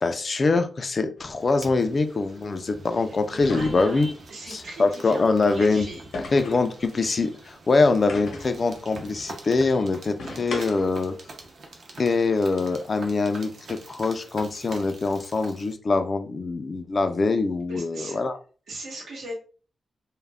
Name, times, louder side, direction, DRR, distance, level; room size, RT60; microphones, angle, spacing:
voice 1, 0.0-4.1 4.5-5.9 6.3-11.2 12.0-18.4, left 3 dB, 35° left, 9 dB, 0.3 m, -24 dB
sound 1, 1.2-1.3 3.4-4.1 6.1-6.7 8.1-8.6 10.2-11.0, left 2 dB, 70° left, 0.7 m, -36 dB
sound 2, 1.3-15.7, right 2 dB, 55° right, 0.6 m, -45 dB
voice 2, 2.9-6.1 6.9-7.1 17.7-18.2 18.7-19.4, right 1 dB, 75° right, -1 dB, 0.9 m, -38 dB
2.3 x 2.0 x 3.3 m, 0.39 s
wide cardioid pair, 155°, 0 cm